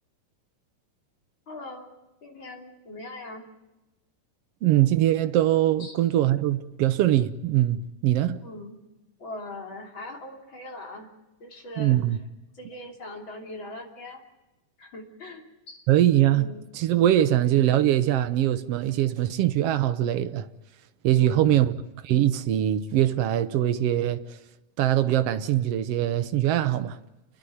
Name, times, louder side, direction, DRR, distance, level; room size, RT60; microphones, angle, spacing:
voice 1, 1.5-1.9 2.2-3.5 5.8-6.0 8.4-8.7 9.2-11.1 11.4-12.0 12.5-14.2 14.8-15.8 16.3-16.6 17.2-17.4 21.1-21.6, left 1 dB, 40° left, 3.6 m, -41 dB
voice 2, 4.6-8.4 11.8-12.2 15.9-16.5 16.7-20.5 21.0-21.7 22.0-24.2 24.8-27.0, right 12 dB, 70° right, 1.5 m, -22 dB
29.5 x 11.5 x 9.4 m
omnidirectional pair, 3.7 m